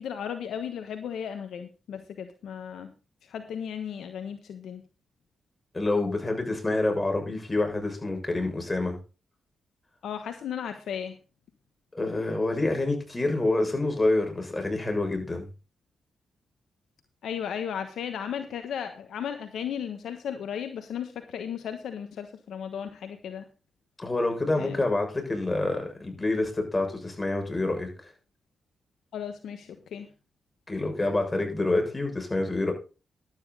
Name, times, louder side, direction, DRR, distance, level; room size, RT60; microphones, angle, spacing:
voice 1, 0.0-2.9 3.2-4.8 10.0-11.2 17.2-23.5 24.5-24.8 29.1-30.1, left 8 dB, 75° left, 8 dB, 1.2 m, -35 dB
voice 2, 5.7-9.0 11.9-15.5 24.0-28.1 30.7-32.7, left 2 dB, 25° left, 3 dB, 6.8 m, -27 dB
12.0 x 9.4 x 4.1 m, 0.32 s
hypercardioid pair, 45°, 0 cm